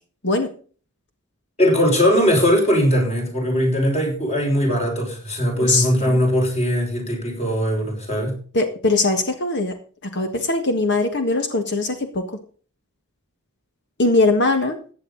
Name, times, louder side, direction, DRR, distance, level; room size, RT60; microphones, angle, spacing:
voice 1, 1.6-8.4, equal, 30° left, 1 dB, 6.0 m, -20 dB
voice 2, 5.6-6.2 8.5-9.7 10.0-12.2 14.0-14.8, left 2 dB, 55° left, 7 dB, 1.6 m, -21 dB
15.5 x 9.3 x 4.0 m, 0.41 s
head